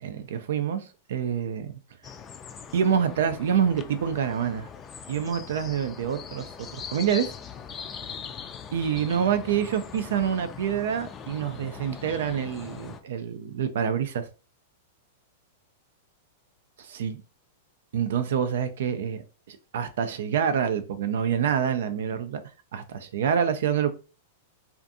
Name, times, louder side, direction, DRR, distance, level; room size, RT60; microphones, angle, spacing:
voice 1, 0.0-1.7 2.7-4.7 5.1-6.5 6.7-7.3 8.7-14.3 16.8-17.2 17.9-22.4 22.7-23.9, right 8 dB, 75° right, 0.3 m, -27 dB
sound 1, 2.0-13.0, left 7 dB, 25° left, 0.3 m, -41 dB
2.5 x 2.4 x 2.5 m
hypercardioid pair, 120°, 0 cm